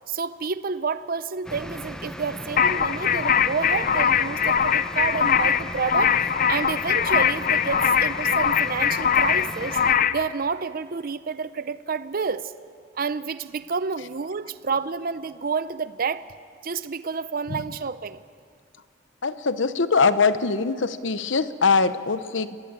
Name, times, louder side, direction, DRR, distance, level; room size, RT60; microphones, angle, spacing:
voice 1, 0.1-9.8 10.1-12.5 13.0-16.2 16.6-18.2, right 5 dB, 45° right, 14 dB, 0.6 m, -29 dB
sound 1, 1.4-9.9, equal, 5° left, 0.8 m, -37 dB
sound 2, 2.6-10.2, left 8 dB, 45° left, 0.6 m, -22 dB
voice 2, 19.2-22.6, left 4 dB, 70° left, 13 dB, 0.9 m, -22 dB
22.5 x 19.5 x 8.8 m, 2.2 s
head